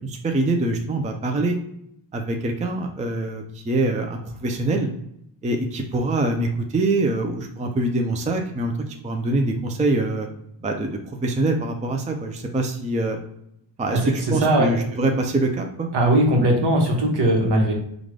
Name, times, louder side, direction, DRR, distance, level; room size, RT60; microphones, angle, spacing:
voice 1, 0.0-1.6 2.1-4.9 5.4-8.7 9.0-10.3 10.6-13.2 13.8-15.9, right 2 dB, 15° right, 3 dB, 0.4 m, -24 dB
voice 2, 14.4-14.7 15.9-17.7, right 1 dB, 60° right, 1 dB, 1.2 m, -19 dB
3.7 x 2.4 x 3.2 m, 0.75 s
cardioid pair, 105°, 46 cm